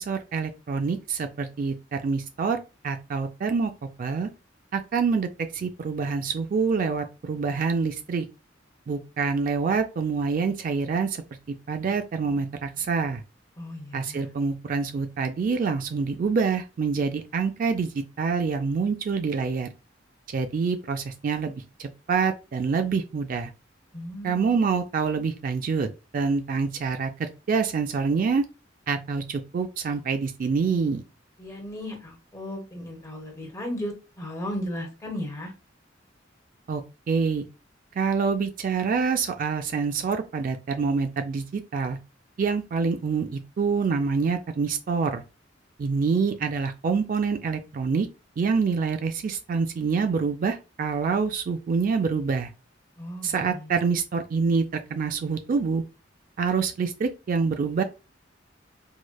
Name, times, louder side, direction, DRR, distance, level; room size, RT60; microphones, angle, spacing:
voice 1, 0.0-3.7 4.0-4.3 4.7-8.3 8.9-11.2 11.7-13.2 13.9-19.7 20.3-23.5 24.2-25.9 26.1-28.4 28.9-31.0 36.7-37.4 38.0-42.0 42.4-45.2 45.8-48.1 48.4-52.5 53.2-55.8 56.4-57.8, right 5 dB, 45° right, 0.3 m, -26 dB
voice 2, 13.6-14.3 23.9-24.7 31.4-35.5 53.0-53.8, left 1 dB, 15° left, 1.0 m, -36 dB
4.7 x 2.1 x 2.2 m
head